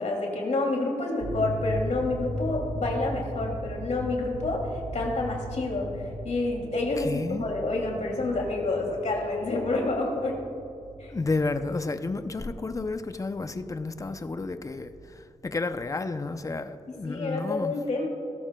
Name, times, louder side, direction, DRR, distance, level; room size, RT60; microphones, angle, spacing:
voice 1, 0.0-4.7 4.9-10.4 11.0-11.1 17.0-18.1, left 2 dB, 65° left, 0 dB, 2.7 m, -28 dB
sound 1, 1.2-16.1, right 1 dB, 50° right, 2.8 m, -38 dB
voice 2, 7.0-7.6 11.1-17.8, left 3 dB, 25° left, 9 dB, 0.6 m, -31 dB
17.5 x 13.5 x 2.3 m, 2.7 s
wide cardioid pair, 110°, 13 cm